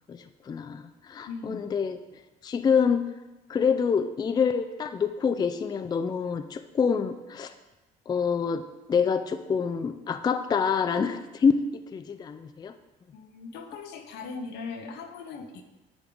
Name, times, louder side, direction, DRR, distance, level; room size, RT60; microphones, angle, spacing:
voice 1, 0.1-2.0 2.4-3.0 3.5-7.5 8.1-8.6 8.9-12.7, left 6 dB, 25° left, 10 dB, 0.3 m, -26 dB
voice 2, 1.3-1.7 13.1-15.6, left 4 dB, 80° left, 6 dB, 0.9 m, -39 dB
10.0 x 3.6 x 3.9 m, 1.1 s
cardioid pair, 110°, 17 cm